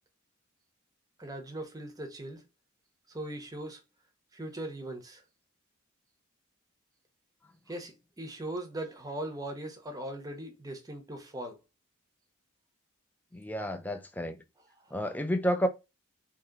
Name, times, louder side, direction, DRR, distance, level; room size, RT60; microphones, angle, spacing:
voice 1, 1.2-2.4 3.1-3.8 4.3-5.2 7.7-11.6 14.8-14.9, right 1 dB, 15° right, 0.8 m, -39 dB
voice 2, 13.3-14.4 14.9-15.7, equal, 10° left, 0.4 m, -30 dB
2.9 x 2.8 x 3.6 m
head